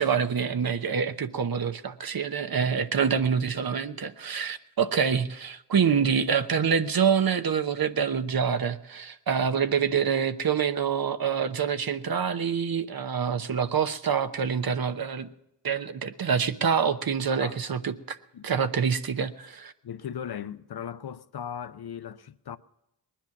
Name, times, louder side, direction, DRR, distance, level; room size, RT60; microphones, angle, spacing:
voice 1, 0.0-15.3 15.6-18.2 18.4-19.7, right 6 dB, 55° right, 0.9 m, -26 dB
voice 2, 19.8-22.6, left 8 dB, 60° left, 0.7 m, -37 dB
19.5 x 10.5 x 5.9 m
cardioid pair, 50°, 43 cm